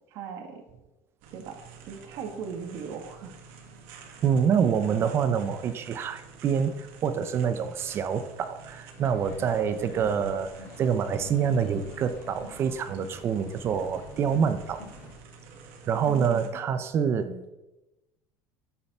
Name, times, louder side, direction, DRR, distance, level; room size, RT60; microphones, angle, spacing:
voice 1, 0.1-0.6 1.3-1.6 1.8-3.3 16.1-16.4 17.2-17.4, right 6 dB, 60° right, 4 dB, 2.0 m, -38 dB
sound 1, 1.2-16.5, right 5 dB, 80° right, 2.1 m, -50 dB
voice 2, 4.2-10.5 10.8-14.8 15.9-17.5, right 7 dB, 40° right, 10 dB, 0.8 m, -26 dB
sound 2, 9.0-15.2, left 3 dB, 60° left, 2.7 m, -47 dB
10.0 x 7.3 x 5.6 m, 1.0 s
cardioid pair, 135°, 7 cm